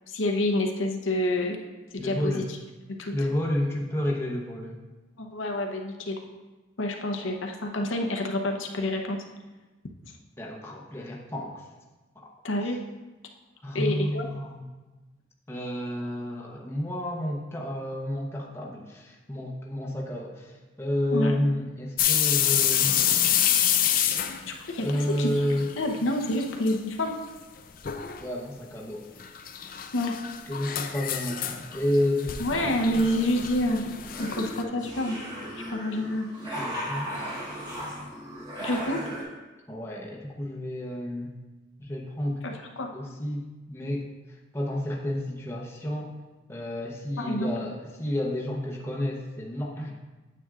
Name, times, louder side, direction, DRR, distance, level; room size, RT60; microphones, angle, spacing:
voice 1, 0.1-1.6 1.9-2.4 3.0-3.1 5.2-6.2 6.8-9.2 12.4-12.8 13.7-14.3 21.1-21.3 24.5-25.3 25.8-27.1 29.9-30.1 32.4-33.9 34.2-35.2 35.7-36.3 38.6-39.0 42.4-42.9 47.2-47.5, left 1 dB, 85° left, 2 dB, 0.8 m, -28 dB
voice 2, 2.0-2.5 3.1-4.8 10.4-11.6 12.2-12.3 13.6-14.6 15.5-23.0 24.8-25.7 28.2-29.1 30.5-32.7 36.6-37.3 39.7-41.3 41.8-42.4 42.9-44.1 44.5-46.1 46.5-50.0, left 1 dB, 15° left, -2 dB, 0.8 m, -30 dB
sound 1, 22.0-25.8 26.0-26.7 27.1-27.2 27.8-28.2 29.2-34.6, left 10 dB, 45° left, 0.5 m, -27 dB
sound 2, 33.9-39.2, equal, 20° right, 1.4 m, -36 dB
9.2 x 7.8 x 2.4 m, 1.2 s
head